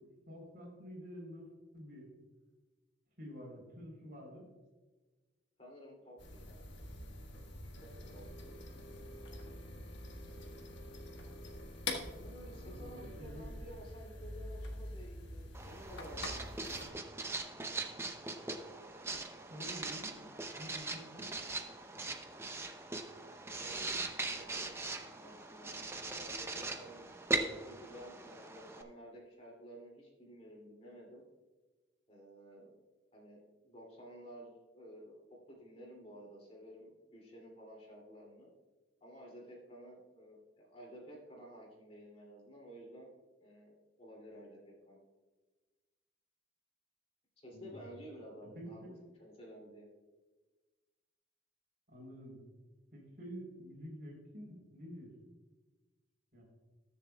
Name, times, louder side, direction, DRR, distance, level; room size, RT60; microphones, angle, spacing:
voice 1, 0.0-1.5 1.7-2.1 3.2-4.5 12.4-13.5 19.5-21.3 47.5-47.9 48.5-48.7 49.0-49.1 51.9-52.4 52.9-55.1 56.3-56.4, equal, 50° right, -1 dB, 3.5 m, -49 dB
voice 2, 5.6-6.6 8.1-8.5 12.1-16.7 23.4-27.1 27.7-31.2 32.1-32.7 33.1-35.2 35.5-38.5 39.0-43.1 43.4-45.0 47.4-48.8 49.2-49.9, equal, 30° left, -2 dB, 2.6 m, -53 dB
sound 1, 6.2-16.9, left 2 dB, 70° left, 1.4 m, -45 dB
Writing, 15.5-28.8, right 2 dB, 15° right, 0.6 m, -40 dB
20.5 x 7.0 x 2.3 m, 1.2 s
head